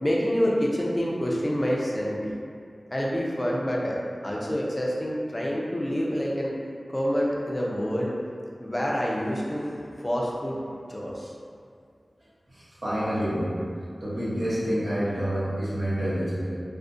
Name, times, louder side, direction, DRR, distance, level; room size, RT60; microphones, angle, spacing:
voice 1, 0.0-2.3 2.9-4.0 4.2-6.5 6.9-8.1 8.6-10.6 10.9-11.3, equal, 30° left, -4 dB, 0.5 m, -27 dB
voice 2, 12.5-13.6 14.0-16.6, equal, 60° right, -11 dB, 0.9 m, -28 dB
2.3 x 2.1 x 2.5 m, 2.3 s
cardioid pair, 45°, 0 cm